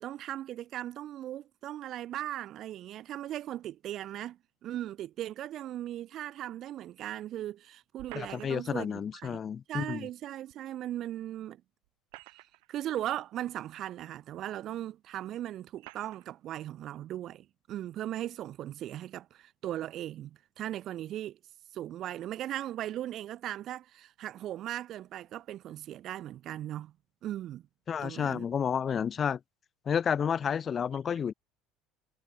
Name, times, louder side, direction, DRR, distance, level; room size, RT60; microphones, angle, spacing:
voice 1, 0.0-9.4 9.7-11.6 12.3-21.4 21.7-26.9 27.2-27.6 28.0-28.5, right 12 dB, 50° right, 1.3 m, -38 dB
sound 1, 8.0-8.8 10.5-10.6 11.8-12.8 13.6-13.7 14.7-14.8 15.8-16.3, right 36 dB, 80° right, 4.8 m, -51 dB
voice 2, 8.1-10.1 27.9-29.4 29.9-31.3, left 7 dB, 35° left, 0.3 m, -31 dB
supercardioid pair, 105°, 0 cm